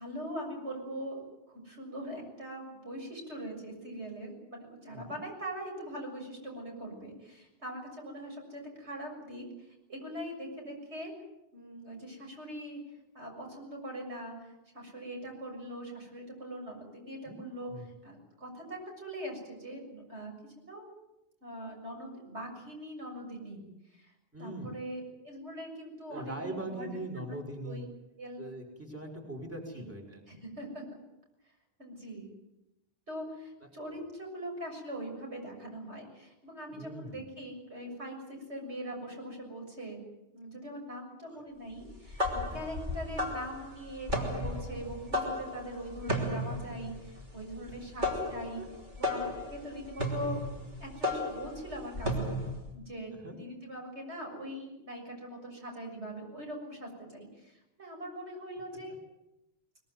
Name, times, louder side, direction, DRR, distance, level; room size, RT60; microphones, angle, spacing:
voice 1, 0.0-11.1 11.5-12.8 13.1-20.9 21.4-24.1 24.4-27.4 27.6-27.8 28.2-28.4 29.7-29.8 30.3-31.0 31.8-32.3 33.1-40.0 40.3-42.2 42.5-48.6 49.0-50.4 50.8-52.3 52.7-58.9, equal, 75° right, 1 dB, 7.2 m, -42 dB
voice 2, 17.3-17.9 24.3-24.7 26.1-27.9 28.4-30.2 36.7-37.2 41.3-41.4 48.2-48.3 53.1-53.4, right 1 dB, 10° right, 2 dB, 4.4 m, -41 dB
sound 1, 41.9-52.7, left 1 dB, 45° right, 3.4 m, -34 dB
22.0 x 20.5 x 9.4 m, 0.89 s
omnidirectional pair, 1.2 m